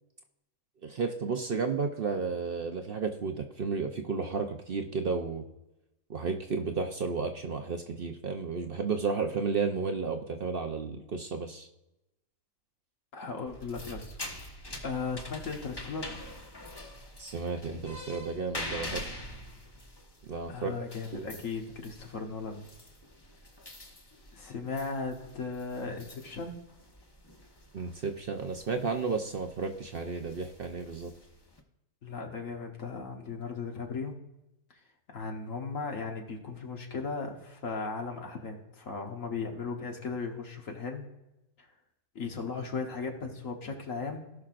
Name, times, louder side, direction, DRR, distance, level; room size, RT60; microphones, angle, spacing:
voice 1, 0.8-5.4 6.1-11.7 17.2-19.1 20.2-21.2 27.7-31.1, right 4 dB, 50° right, 5 dB, 0.7 m, -33 dB
voice 2, 13.1-14.2 14.8-16.1 20.5-22.7 24.3-26.5 32.0-34.1 35.1-41.1 41.6-41.7 42.1-44.3, left 4 dB, 65° left, 2 dB, 1.6 m, -37 dB
sound 1, 13.5-31.6, left 1 dB, 20° left, 0.9 m, -45 dB
17.5 x 5.9 x 2.5 m, 0.92 s
omnidirectional pair, 1.6 m